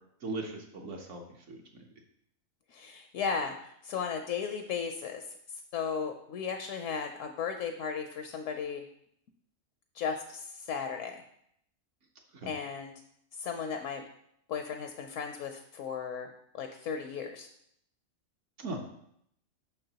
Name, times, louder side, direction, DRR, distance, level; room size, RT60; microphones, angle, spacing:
voice 1, 0.2-1.2 1.5-1.6 12.4-12.5 18.6-18.9, right 2 dB, 65° right, 1 dB, 1.1 m, -38 dB
voice 2, 2.7-5.2 5.7-8.8 9.9-11.2 12.5-12.9 13.4-14.0 14.5-17.5, left 6 dB, 75° left, 5 dB, 0.9 m, -35 dB
6.7 x 5.9 x 2.8 m, 0.72 s
omnidirectional pair, 1.4 m